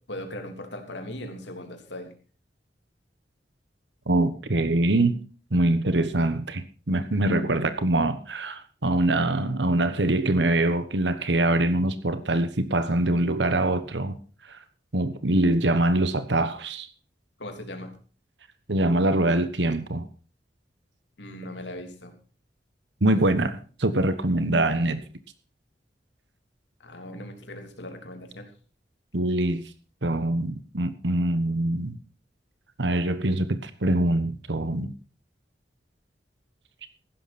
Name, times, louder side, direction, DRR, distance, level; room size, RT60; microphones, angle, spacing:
voice 1, 0.1-2.1 17.4-18.0 21.2-22.1 23.1-23.2 26.8-28.5, left 1 dB, 90° left, 5 dB, 3.3 m, -39 dB
voice 2, 4.1-5.2 5.5-14.2 14.5-14.6 14.9-16.9 18.7-20.0 23.0-25.0 29.1-29.6 30.0-32.0 32.8-34.9, right 1 dB, 85° right, 11 dB, 1.3 m, -24 dB
15.5 x 11.5 x 4.3 m, 0.38 s
head